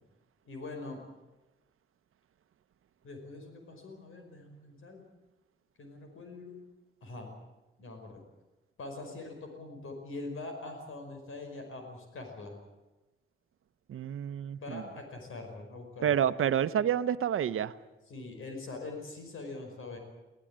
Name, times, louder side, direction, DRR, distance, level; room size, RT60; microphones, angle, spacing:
voice 1, 0.5-1.0 3.0-5.0 5.8-6.6 7.0-7.3 7.8-8.2 8.8-12.6 14.6-16.2 18.1-20.0, left 3 dB, 80° left, 4 dB, 5.4 m, -43 dB
voice 2, 13.9-14.8 16.0-17.7, right 9 dB, 85° right, 13 dB, 0.9 m, -29 dB
21.0 x 18.5 x 8.8 m, 1.1 s
wide cardioid pair, 145°, 21 cm